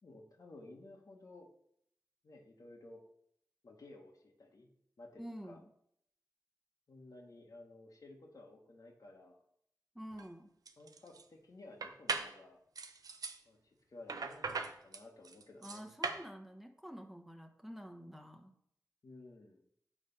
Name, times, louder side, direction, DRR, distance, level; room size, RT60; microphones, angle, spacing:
voice 1, 0.0-1.5 2.2-3.0 3.6-4.7 5.0-5.6 6.9-9.4 10.8-12.6 13.5-15.9 19.0-19.6, left 2 dB, 70° left, 2 dB, 1.2 m, -55 dB
voice 2, 5.2-5.6 9.9-10.5 15.6-18.6, equal, 5° right, 3 dB, 1.0 m, -48 dB
sound 1, 10.1-10.3 10.7-11.2 11.8-12.4 12.8-13.4 14.1-16.3, right 4 dB, 80° right, 0.5 m, -39 dB
7.2 x 3.3 x 5.5 m, 0.71 s
cardioid pair, 40°, 6 cm